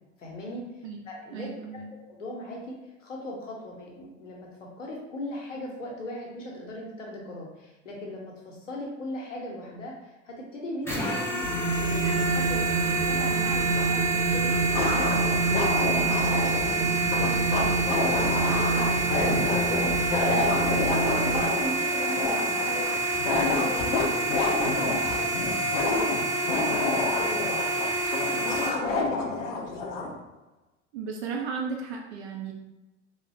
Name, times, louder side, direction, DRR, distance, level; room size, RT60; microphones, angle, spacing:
voice 1, 0.2-1.8 2.1-2.7 3.0-11.4 11.8-15.1 15.5-17.4 17.7-20.9 21.2-22.9 23.3-26.1 26.4-30.1, left 1 dB, 80° left, -2 dB, 0.7 m, -38 dB
voice 2, 1.3-1.9 30.9-32.5, right 5 dB, 60° right, 0 dB, 0.5 m, -34 dB
sound 1, 10.8-28.7, right 2 dB, 5° left, 0.6 m, -28 dB
Wind, 11.4-21.4, right 4 dB, 40° right, 0.8 m, -28 dB
sound 2, 13.8-13.9 14.7-30.1, left 3 dB, 50° left, 0.5 m, -29 dB
3.1 x 2.1 x 2.4 m, 1.0 s
figure-of-eight pair, 70°, 37 cm